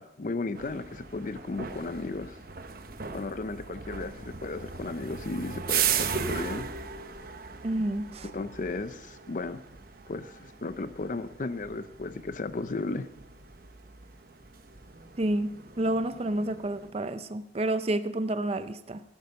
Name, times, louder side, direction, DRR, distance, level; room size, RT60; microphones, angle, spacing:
voice 1, 0.0-2.4 3.1-6.7 8.3-9.6 10.1-13.1, left 3 dB, 45° left, 13 dB, 0.5 m, -35 dB
sound 1, 0.5-16.9, right 7 dB, 55° right, 1.0 m, -37 dB
voice 2, 7.6-8.3 15.2-19.0, right 1 dB, 35° right, 11 dB, 0.5 m, -29 dB
14.5 x 12.0 x 5.4 m, 0.86 s
head